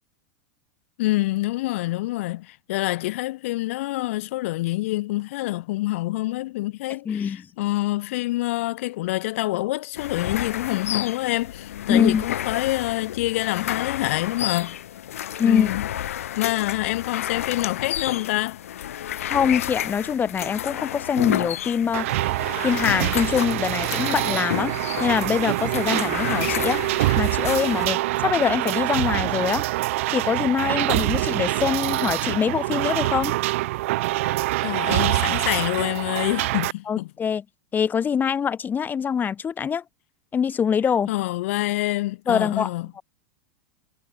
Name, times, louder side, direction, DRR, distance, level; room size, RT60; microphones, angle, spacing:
voice 1, 1.0-14.8 15.4-15.9 16.4-18.6 34.6-37.1 41.1-42.9, left 18 dB, 70° left, 1.9 m, -26 dB
voice 2, 7.1-7.4 11.9-12.3 15.4-15.7 19.3-22.1 22.6-24.8 25.0-29.7 30.1-33.3 36.9-37.4 37.7-39.8 40.3-41.1 42.3-43.0, left 7 dB, 25° left, 3.4 m, -24 dB
sound 1, 10.0-27.9, left 11 dB, 85° left, 4.7 m, -31 dB
sound 2, 21.9-36.7, right 18 dB, 70° right, 3.1 m, -25 dB
hypercardioid pair, 110°, 7 cm